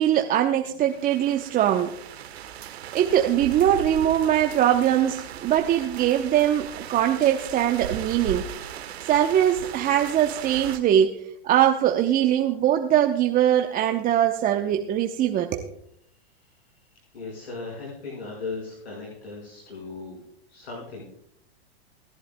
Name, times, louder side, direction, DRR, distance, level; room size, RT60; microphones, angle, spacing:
voice 1, 0.0-1.9 2.6-8.5 9.0-11.2 11.4-15.7, right 11 dB, 25° right, 4 dB, 0.8 m, -22 dB
sound 1, 0.9-10.8, right 9 dB, 75° right, 1.2 m, -38 dB
voice 2, 17.1-20.2 20.5-21.0, left 3 dB, 90° left, -3 dB, 5.3 m, -37 dB
27.5 x 11.0 x 2.2 m, 0.73 s
hypercardioid pair, 115°, 32 cm